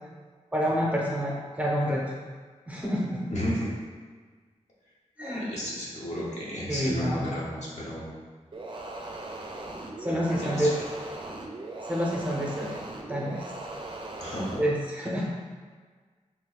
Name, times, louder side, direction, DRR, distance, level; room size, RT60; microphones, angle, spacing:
voice 1, 0.5-2.0 2.7-3.2 5.2-5.4 6.7-7.3 10.0-10.7 11.9-12.8 13.1-13.4 14.6-15.3, equal, 10° right, -4 dB, 0.8 m, -28 dB
voice 2, 3.3-3.7 5.2-8.1 10.1-10.8 14.2-14.7 15.0-15.1, equal, 60° left, -6 dB, 1.1 m, -33 dB
sound 1, 8.5-14.7, right 2 dB, 40° right, 0.5 m, -39 dB
3.0 x 2.2 x 4.0 m, 1.5 s
cardioid pair, 45°, 13 cm